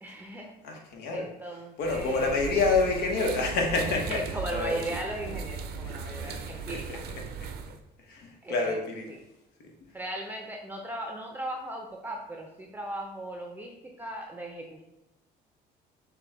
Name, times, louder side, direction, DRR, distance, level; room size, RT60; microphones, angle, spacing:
voice 1, 0.0-0.5 1.1-2.4 3.9-7.0 7.3-7.4 8.4-8.8 9.1-9.2 9.9-14.8, right 1 dB, 10° right, 1 dB, 0.5 m, -37 dB
voice 2, 0.6-1.2 1.8-4.2 4.5-4.8 6.2-6.3 6.7-6.8 8.1-9.0, left 4 dB, 80° left, 1 dB, 1.0 m, -27 dB
sound 1, 1.8-7.8, right 6 dB, 70° right, 0.5 m, -37 dB
6.6 x 2.3 x 3.3 m, 0.91 s
cardioid pair, 110°, 17 cm